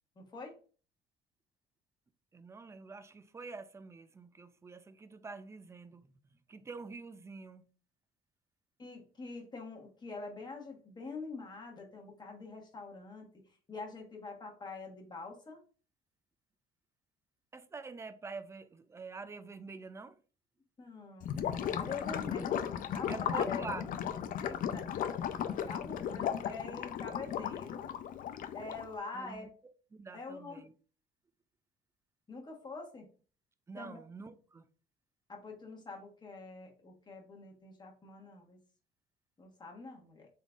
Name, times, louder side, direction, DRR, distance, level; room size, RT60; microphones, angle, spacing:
voice 1, 0.2-0.5 8.8-13.3 13.7-15.6 20.8-22.5 22.9-23.8 24.4-27.9 28.5-29.5 30.1-30.6 32.3-33.1 33.8-34.0 35.3-38.6 39.4-40.3, left 3 dB, 25° left, 1.2 m, -45 dB
voice 2, 2.3-6.0 6.5-7.7 17.5-20.2 22.0-22.2 23.1-24.0 29.1-29.5 29.9-30.7 33.7-34.6, right 4 dB, 15° right, 0.3 m, -46 dB
Gurgling / Liquid, 21.2-28.9, left 9 dB, 55° left, 0.4 m, -36 dB
3.7 x 3.7 x 2.4 m
cardioid pair, 110°, 17 cm